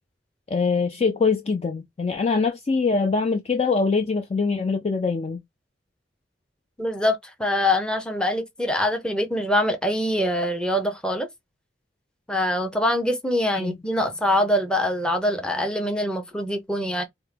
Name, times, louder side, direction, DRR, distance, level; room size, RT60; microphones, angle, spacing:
voice 1, 0.5-5.4 13.5-13.8, left 4 dB, 35° left, 0.4 m, -23 dB
voice 2, 6.8-11.3 12.3-17.0, left 1 dB, 5° left, 0.8 m, -24 dB
4.5 x 2.1 x 3.3 m
head